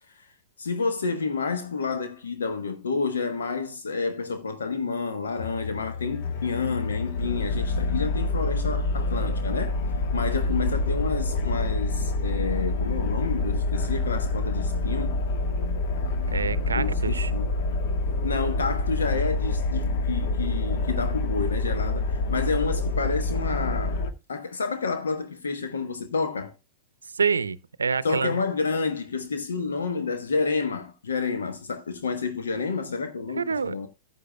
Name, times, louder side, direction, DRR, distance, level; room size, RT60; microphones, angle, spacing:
voice 1, 0.6-9.8 10.1-15.2 16.7-17.5 18.2-24.0 24.3-26.5 28.0-33.9, left 4 dB, 75° left, 1.1 m, -29 dB
sound 1, 5.4-24.1, left 2 dB, 55° left, 1.4 m, -27 dB
voice 2, 16.3-17.3 27.1-28.4 33.4-33.8, right 5 dB, 80° right, 0.6 m, -27 dB
14.5 x 9.5 x 2.3 m
figure-of-eight pair, 100°, 0 cm